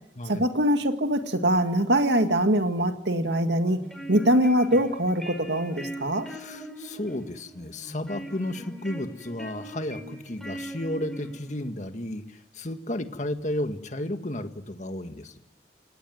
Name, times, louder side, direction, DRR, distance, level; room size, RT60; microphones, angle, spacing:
voice 1, 0.3-3.8 4.1-6.3, right 1 dB, 70° right, 7 dB, 2.1 m, -23 dB
sound 1, 3.7-11.7, right 1 dB, ahead, 5.2 m, -41 dB
voice 2, 6.2-15.4, left 1 dB, 40° left, 8 dB, 1.8 m, -33 dB
29.0 x 18.5 x 9.5 m, 0.75 s
head